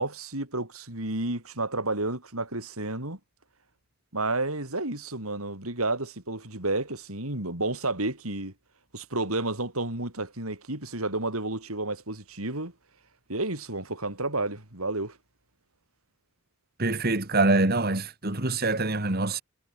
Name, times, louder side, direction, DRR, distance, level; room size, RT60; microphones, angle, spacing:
voice 1, 0.0-3.2 4.1-8.5 8.9-12.7 13.3-15.2, right 2 dB, 75° right, 5.9 m, -31 dB
voice 2, 16.8-19.4, right 2 dB, 45° right, 2.5 m, -25 dB
head